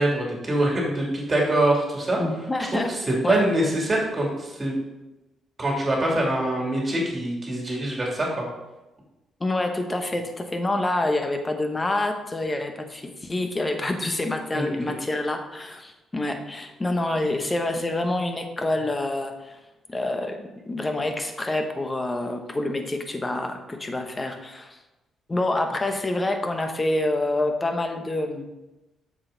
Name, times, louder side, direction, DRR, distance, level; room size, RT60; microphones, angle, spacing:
voice 1, 0.0-2.2 2.6-4.8 5.6-8.4 14.5-14.7, right 1 dB, 25° right, -2 dB, 2.7 m, -24 dB
voice 2, 2.2-2.9 3.2-3.4 9.4-19.6 19.9-24.8 25.3-28.5, left 2 dB, 20° left, 5 dB, 1.1 m, -27 dB
7.6 x 6.4 x 4.0 m, 1.0 s
cardioid pair, 90°, 0 cm